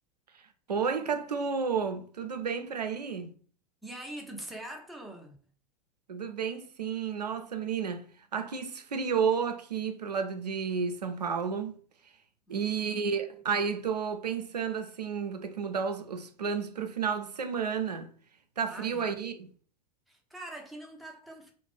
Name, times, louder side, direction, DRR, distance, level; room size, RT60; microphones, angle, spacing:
voice 1, 0.7-3.3 6.1-8.0 8.3-11.7 12.5-18.1 18.6-19.5, right 6 dB, 85° right, 0.4 m, -31 dB
voice 2, 3.8-5.4 12.5-13.0 18.7-19.2 20.1-21.5, right 1 dB, ahead, 0.6 m, -43 dB
2.4 x 2.1 x 3.2 m
figure-of-eight pair, 85°, 20 cm